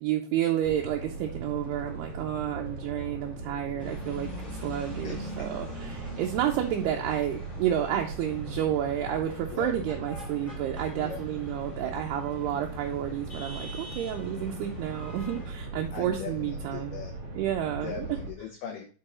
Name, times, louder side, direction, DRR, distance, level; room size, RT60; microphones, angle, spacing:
voice 1, 0.0-4.3 4.6-17.0 17.3-18.1, right 11 dB, 80° right, 1 dB, 2.7 m, -30 dB
sound 1, 0.6-18.3, right 3 dB, 35° right, 2.0 m, -39 dB
sound 2, 3.8-15.5, equal, 10° left, 2.6 m, -44 dB
voice 2, 5.0-5.5 9.5-9.7 11.0-11.2 15.9-17.1 17.8-18.8, left 7 dB, 75° left, 1 dB, 2.0 m, -39 dB
6.8 x 5.3 x 4.2 m, 0.38 s
omnidirectional pair, 4.9 m